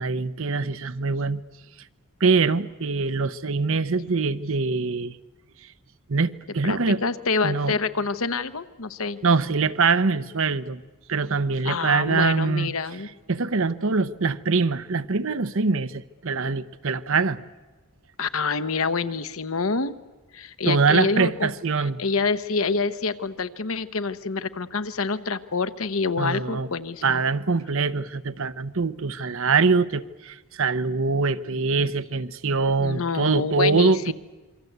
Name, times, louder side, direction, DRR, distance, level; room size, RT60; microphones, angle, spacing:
voice 1, 0.0-1.4 2.2-5.2 6.1-7.0 7.4-7.8 9.2-10.8 11.1-12.7 13.3-17.4 20.6-22.0 26.2-26.7 27.0-34.1, right 4 dB, 60° right, 0.8 m, -23 dB
voice 2, 6.6-9.2 11.6-13.1 18.2-19.9 20.3-21.5 22.0-27.2 32.8-34.1, left 4 dB, 65° left, 1.0 m, -27 dB
27.0 x 24.0 x 8.1 m
head